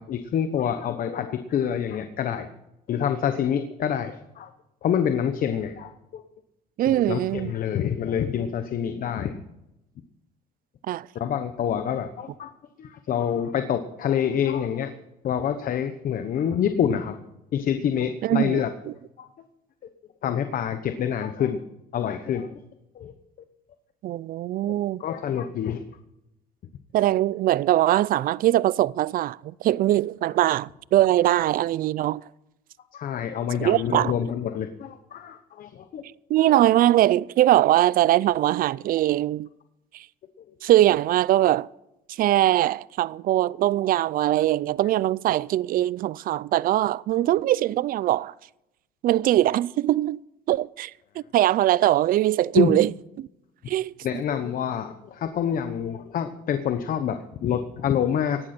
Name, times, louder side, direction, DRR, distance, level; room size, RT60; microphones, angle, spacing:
voice 1, 0.0-2.5 2.9-4.5 4.8-6.2 6.9-9.4 11.1-12.5 12.8-15.0 15.2-17.2 17.5-18.7 19.2-19.3 20.2-21.6 21.9-22.6 22.9-23.1 24.7-24.8 25.0-25.8 32.9-36.0 36.5-36.6 52.5-52.7 54.0-58.5, left 8 dB, 55° left, 1.0 m, -27 dB
voice 2, 6.8-7.5 10.9-11.1 18.2-18.6 24.0-25.0 26.9-32.2 33.6-34.1 36.3-39.5 40.6-41.7 42.2-48.3 49.0-50.2 50.5-50.9 51.3-52.9 53.2-53.3 53.7-53.9, right 14 dB, 60° right, 0.4 m, -21 dB
17.5 x 11.5 x 4.4 m
cardioid pair, 110°, 17 cm